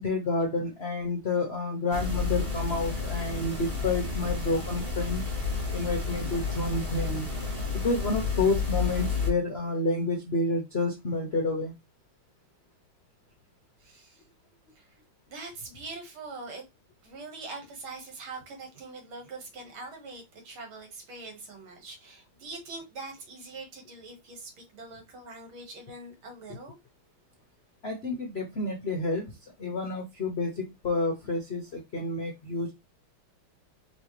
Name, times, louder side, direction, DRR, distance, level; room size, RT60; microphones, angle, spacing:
voice 1, 0.0-5.2 5.7-7.3 7.7-11.7 27.8-32.7, left 2 dB, 60° left, 0.6 m, -29 dB
sound 1, 1.9-9.3, left 4 dB, 30° right, 2.0 m, -31 dB
voice 2, 13.8-14.2 14.8-15.0 15.3-16.6 17.0-26.8, right 3 dB, 75° right, 2.3 m, -43 dB
5.3 x 3.2 x 3.1 m
omnidirectional pair, 2.3 m